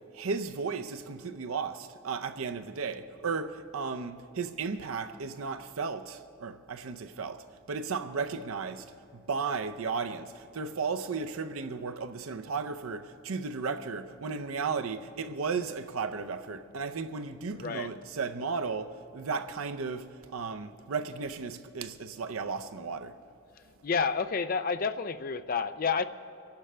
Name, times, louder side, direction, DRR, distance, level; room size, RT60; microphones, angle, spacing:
voice 1, 0.1-23.1, right 5 dB, 85° right, 0.6 m, -35 dB
voice 2, 17.5-17.9 23.8-26.0, left 5 dB, 40° left, 0.4 m, -29 dB
24.5 x 11.5 x 3.3 m
head